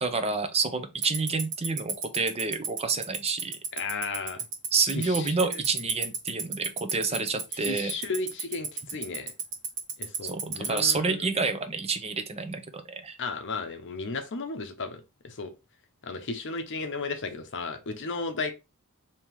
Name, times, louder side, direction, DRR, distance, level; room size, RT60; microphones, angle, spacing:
voice 1, 0.0-3.6 4.7-7.9 10.3-13.2, right 4 dB, 30° right, 0.6 m, -29 dB
Tick-tock, 1.0-10.9, right 9 dB, 90° right, 1.1 m, -29 dB
voice 2, 3.7-4.4 4.9-5.6 7.5-9.3 10.0-11.2 13.2-15.5 16.0-18.5, left 4 dB, 55° left, 0.7 m, -34 dB
3.6 x 2.8 x 4.5 m
head